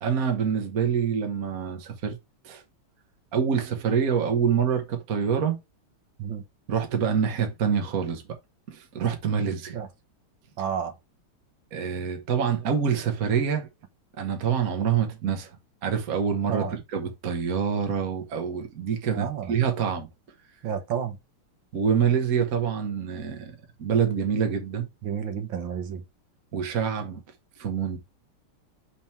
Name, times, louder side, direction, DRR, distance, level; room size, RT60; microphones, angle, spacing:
voice 1, 0.0-2.2 2.4-2.6 3.3-5.6 6.7-8.2 8.7-9.8 11.7-13.7 14.2-15.5 15.8-20.1 21.7-24.9 26.5-27.2 27.6-28.0, right 7 dB, 50° right, 1.4 m, -26 dB
voice 2, 10.6-10.9 16.5-16.8 19.1-19.5 20.6-21.2 25.0-26.0, right 8 dB, 65° right, 1.6 m, -31 dB
5.4 x 4.4 x 4.4 m
omnidirectional pair, 2.4 m